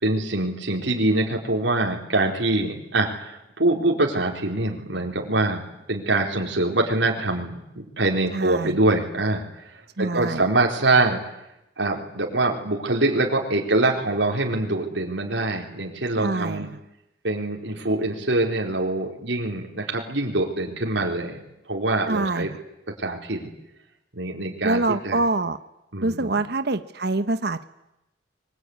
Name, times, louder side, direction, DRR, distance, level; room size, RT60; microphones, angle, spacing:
voice 1, 0.0-5.6 5.9-11.2 11.8-16.7 17.2-21.4 21.7-22.5 23.0-23.5 24.1-25.2 25.9-26.4, right 2 dB, 80° right, 0 dB, 4.3 m, -24 dB
voice 2, 8.3-8.8 10.0-10.4 16.2-16.7 22.1-22.5 24.6-25.6 26.0-27.7, right 2 dB, 65° right, 10 dB, 1.2 m, -25 dB
24.0 x 23.5 x 9.7 m, 0.87 s
head